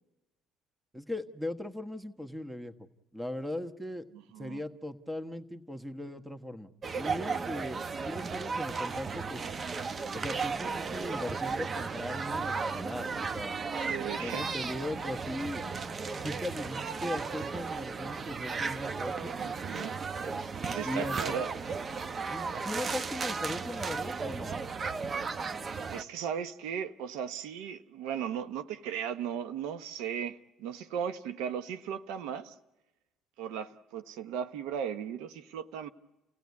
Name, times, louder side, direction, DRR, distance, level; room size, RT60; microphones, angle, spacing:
voice 1, 0.9-2.9 3.1-4.0 4.4-9.4 10.1-13.6 14.2-15.6 16.2-19.3 20.8-21.4 22.3-24.5, left 1 dB, 5° right, 8 dB, 1.4 m, -39 dB
voice 2, 4.1-4.6 13.9-14.5 19.4-20.0 20.6-21.5 25.9-32.5 33.4-35.9, right 8 dB, 85° right, 10 dB, 1.0 m, -37 dB
sound 1, 6.8-26.0, right 4 dB, 35° right, 0.9 m, -35 dB
29.5 x 16.5 x 9.6 m, 1.0 s
supercardioid pair, 90°, 0 cm